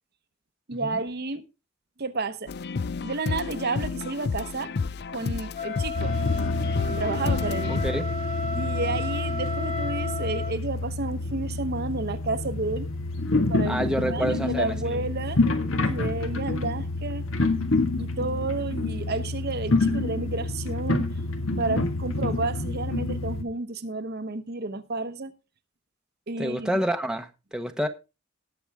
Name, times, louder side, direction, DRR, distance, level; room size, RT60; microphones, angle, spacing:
voice 1, 0.7-1.4 2.0-2.5 3.0-4.7 5.1-6.1 6.9-7.8 8.5-12.9 13.5-15.4 15.9-17.2 18.0-21.1 21.6-25.3 26.3-26.7, right 3 dB, 50° right, 1.0 m, -31 dB
sound 1, 2.5-7.9, left 4 dB, 50° left, 0.5 m, -31 dB
Wind instrument woodwind instrument, 5.5-10.5, left 4 dB, 30° left, 1.5 m, -33 dB
sound 2, 5.9-23.4, left 2 dB, 70° left, 1.7 m, -28 dB
voice 2, 7.7-8.0 13.7-15.0 26.4-27.9, equal, 5° right, 0.9 m, -28 dB
19.0 x 7.0 x 3.5 m
head